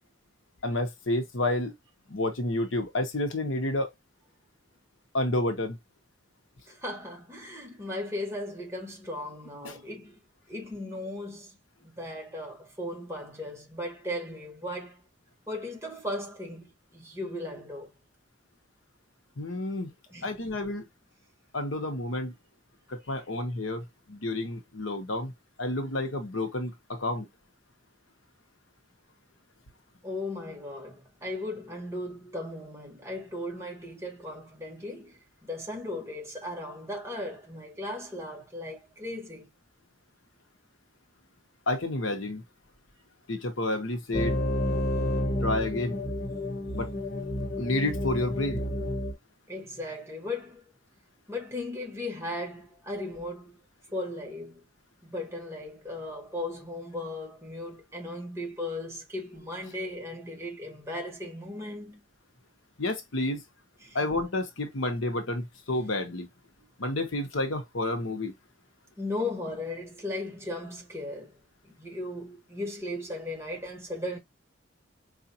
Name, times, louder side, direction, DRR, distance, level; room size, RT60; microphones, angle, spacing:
voice 1, 0.6-1.7 2.1-3.9 5.1-5.8 9.6-9.8 19.4-19.9 20.2-20.8 21.5-22.3 22.9-25.3 25.6-27.3 41.7-42.4 43.3-44.4 45.4-46.0 46.7-46.9 47.6-48.6 62.8-63.4 63.9-66.3 66.8-68.3, left 1 dB, 80° left, 0.9 m, -30 dB
voice 2, 6.7-10.2 10.5-11.6 11.8-15.0 15.5-17.9 20.1-20.4 23.0-23.2 30.0-39.5 49.5-50.6 51.3-53.6 53.9-54.6 55.0-62.0 63.8-64.0 69.0-71.4 71.6-74.2, left 1 dB, 15° right, 1.1 m, -37 dB
sound 1, 44.1-49.1, left 1 dB, 55° left, 1.1 m, -30 dB
4.9 x 2.5 x 2.7 m
head